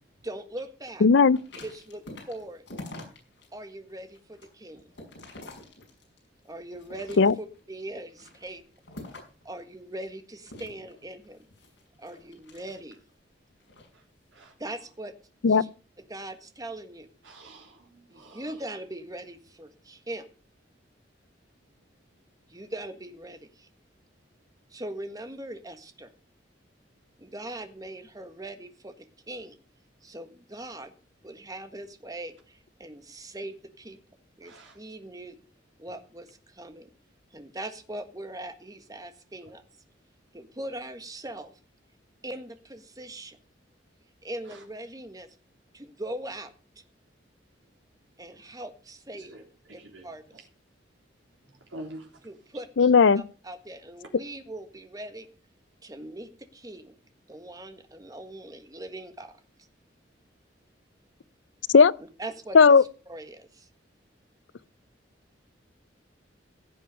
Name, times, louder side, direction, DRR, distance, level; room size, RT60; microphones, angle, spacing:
voice 1, 0.2-1.1 1.6-2.6 3.5-4.8 6.4-8.6 9.4-11.5 12.0-13.0 14.6-15.1 15.5-15.7 16.1-17.1 18.1-20.3 22.5-23.7 24.7-26.1 27.2-29.6 30.0-30.9 31.2-34.0 34.4-35.4 35.8-36.9 37.3-39.6 40.3-41.6 42.2-43.4 44.2-45.3 45.7-46.8 48.2-49.3 49.7-50.5 52.2-52.7 53.1-55.3 55.8-57.0 57.3-59.3 62.2-62.8 63.1-63.7, right 1 dB, 20° right, 1.6 m, -40 dB
voice 2, 1.0-1.4 7.2-7.3 15.4-15.6 52.8-53.2 61.7-61.9 62.5-62.8, left 5 dB, 85° left, 0.5 m, -16 dB
sound 1, 1.3-3.5 3.9-6.3 6.7-7.6 8.1-9.4 10.4-13.1 13.6-13.9, left 2 dB, 65° left, 5.7 m, -46 dB
voice 3, 17.2-18.4 34.4-34.7 44.5-44.6 49.3-49.4 49.7-50.1 50.3-50.4 51.7-52.1, right 1 dB, 85° right, 3.3 m, -45 dB
16.5 x 7.7 x 5.4 m
head